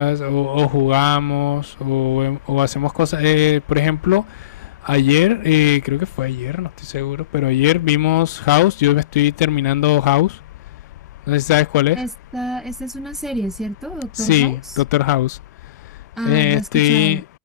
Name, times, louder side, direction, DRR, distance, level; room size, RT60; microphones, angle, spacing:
voice 1, 0.0-4.2 4.8-10.3 11.3-12.0 14.2-15.4 16.3-17.2, left 15 dB, 65° left, 0.5 m, -18 dB
voice 2, 11.9-14.8 16.2-17.2, right 1 dB, 5° right, 0.5 m, -27 dB
figure-of-eight pair, 75°, 10 cm